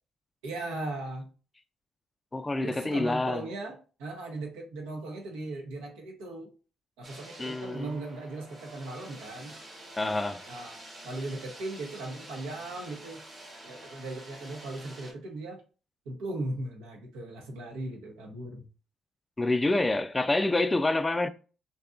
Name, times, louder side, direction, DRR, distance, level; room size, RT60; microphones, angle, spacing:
voice 1, 0.4-1.3 2.6-6.5 7.0-9.6 10.4-13.2 13.6-15.6 16.1-18.7, right 2 dB, 85° right, 0.7 m, -38 dB
voice 2, 2.3-3.5 7.4-7.9 10.0-10.4 19.4-21.3, left 2 dB, 20° left, 0.3 m, -27 dB
sound 1, 7.0-15.1, right 1 dB, 35° right, 1.1 m, -48 dB
2.7 x 2.3 x 2.4 m
hypercardioid pair, 55°, 0 cm